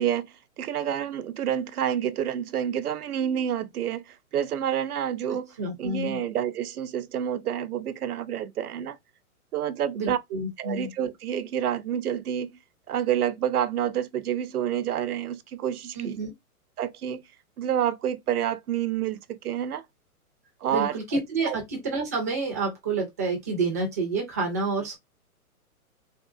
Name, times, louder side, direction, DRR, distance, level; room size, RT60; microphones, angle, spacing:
voice 1, 0.0-5.5 5.8-9.0 9.5-10.2 10.6-12.5 12.9-16.2 16.8-17.2 17.6-19.8 20.6-20.9 21.5-21.6, right 10 dB, 80° right, 0.7 m, -28 dB
voice 2, 5.6-6.2 9.9-10.9 15.9-16.3 20.7-25.0, right 3 dB, 10° right, 0.4 m, -29 dB
3.6 x 2.4 x 2.3 m
hypercardioid pair, 140°, 44 cm